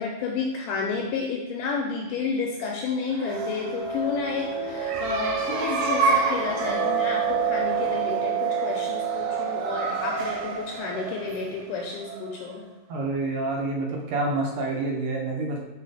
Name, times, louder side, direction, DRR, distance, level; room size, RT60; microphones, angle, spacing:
voice 1, 0.0-12.6, left 4 dB, 80° left, 0 dB, 2.0 m, -31 dB
sound 1, 3.0-12.6, right 5 dB, 90° right, 2.6 m, -27 dB
voice 2, 12.9-15.6, right 2 dB, 75° right, -1 dB, 2.7 m, -28 dB
5.6 x 4.5 x 4.8 m, 1.1 s
omnidirectional pair, 4.2 m